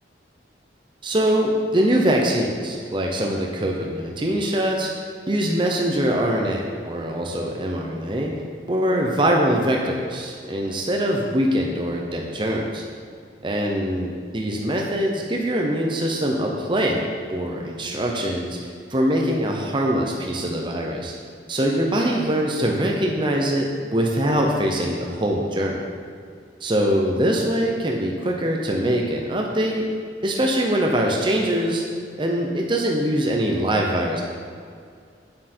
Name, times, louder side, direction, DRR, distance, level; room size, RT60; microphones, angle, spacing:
voice 1, 1.0-8.3 8.7-12.8 13.4-17.0 17.3-21.1 21.5-25.8 26.6-29.9 30.2-31.8 32.2-34.2, equal, 25° right, 0 dB, 0.8 m, -23 dB
8.8 x 7.6 x 4.4 m, 2.2 s
head